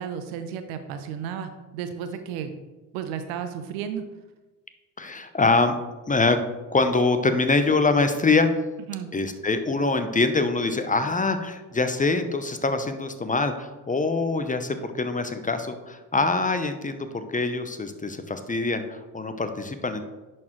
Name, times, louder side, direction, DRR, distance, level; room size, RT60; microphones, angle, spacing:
voice 1, 0.0-2.5 2.9-4.0 8.9-9.1, right 8 dB, 75° right, 9 dB, 0.8 m, -33 dB
voice 2, 5.0-5.8 6.1-6.4 6.7-8.5 9.1-20.0, left 3 dB, 15° left, 9 dB, 0.7 m, -24 dB
10.5 x 4.5 x 3.1 m, 1.1 s
hypercardioid pair, 55°, 46 cm